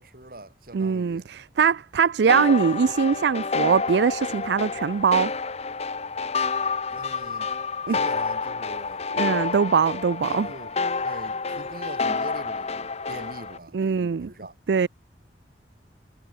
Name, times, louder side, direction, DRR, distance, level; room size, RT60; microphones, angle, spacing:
voice 1, 0.0-1.3 6.9-7.5 7.9-9.0 10.2-14.5, right 1 dB, 55° right, 5.1 m, -43 dB
voice 2, 0.7-5.3 7.9-8.0 9.1-10.5 13.7-14.3 14.7-14.9, right 6 dB, 70° right, 0.4 m, -22 dB
sound 1, 2.3-13.6, left 4 dB, 35° left, 0.9 m, -29 dB
head